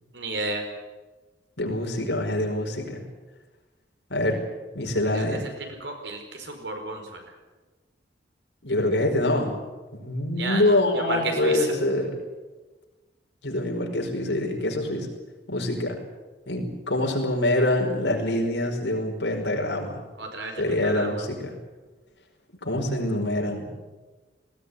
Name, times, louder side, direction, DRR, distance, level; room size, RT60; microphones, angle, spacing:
voice 1, 0.1-0.6 5.1-5.5 5.8-7.2 10.4-11.7 20.2-21.2, right 2 dB, 80° right, 4 dB, 4.9 m, -32 dB
voice 2, 1.6-3.0 4.1-4.4 4.7-5.4 8.6-9.6 9.9-12.1 13.4-15.1 15.5-16.0 16.5-20.0 20.6-21.5 22.6-23.8, left 1 dB, 85° left, 2 dB, 5.2 m, -25 dB
20.0 x 17.5 x 9.8 m, 1.2 s
head